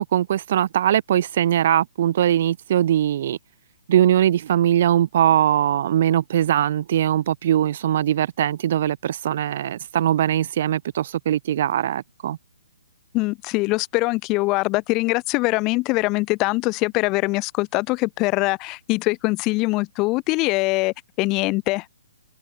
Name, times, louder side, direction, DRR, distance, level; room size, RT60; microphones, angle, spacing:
voice 1, 0.0-3.4 3.9-12.4, right 11 dB, 45° right, 0.9 m, -21 dB
voice 2, 13.1-21.9, left 23 dB, 20° left, 0.7 m, -23 dB
hypercardioid pair, 160°, 0 cm